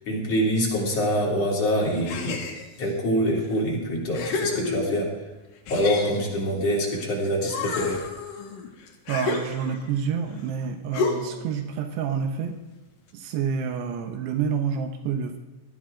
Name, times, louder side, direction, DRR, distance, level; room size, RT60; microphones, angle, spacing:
voice 1, 0.1-2.4 2.8-5.1 5.7-8.0, equal, 40° left, -4 dB, 4.4 m, -25 dB
sound 1, 2.1-2.9 3.6-3.7 4.1-5.2 5.7-7.1 7.4-10.0 10.9-11.5, left 4 dB, 65° left, 2.8 m, -31 dB
voice 2, 9.1-12.6 13.1-15.4, right 7 dB, 85° right, 6 dB, 3.2 m, -28 dB
17.5 x 13.5 x 3.8 m, 1.2 s
omnidirectional pair, 4.7 m